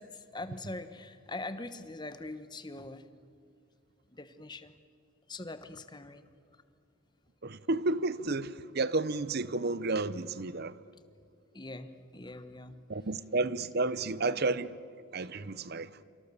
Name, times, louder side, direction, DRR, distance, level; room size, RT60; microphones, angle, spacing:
voice 1, 0.0-3.1 4.1-4.7 5.3-6.6 11.5-12.8, left 2 dB, 20° left, 1.1 m, -43 dB
voice 2, 7.4-10.8 12.9-14.8 15.1-16.0, right 3 dB, 50° right, 0.7 m, -31 dB
27.5 x 26.0 x 6.9 m
head